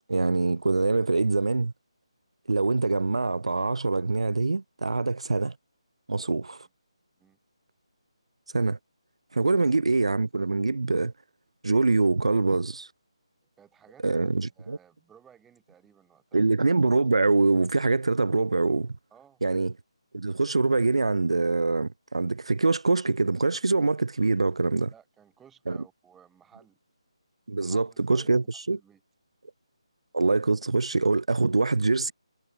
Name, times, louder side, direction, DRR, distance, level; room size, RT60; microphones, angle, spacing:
voice 1, 0.1-1.7 2.5-5.5 6.1-6.7 8.5-8.8 9.3-11.1 11.6-12.9 14.0-14.8 16.3-18.9 19.4-19.7 20.1-24.9 25.7-25.8 27.5-28.8 30.1-32.1, right 3 dB, 70° right, 3.3 m, -24 dB
voice 2, 13.6-16.5 19.1-19.4 24.9-26.8 27.6-28.3 28.7-29.0, right 8 dB, 5° right, 6.5 m, -57 dB
hypercardioid pair, 180°, 3 cm